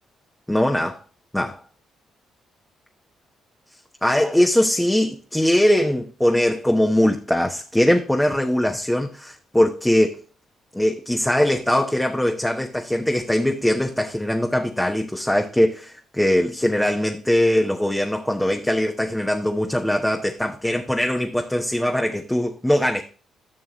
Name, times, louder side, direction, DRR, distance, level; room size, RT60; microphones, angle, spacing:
voice 1, 0.5-1.0 1.3-1.6 4.0-10.2 10.7-23.0, left 1 dB, 5° left, 1.1 m, -21 dB
11.0 x 6.2 x 3.0 m
supercardioid pair, 55°, 0 cm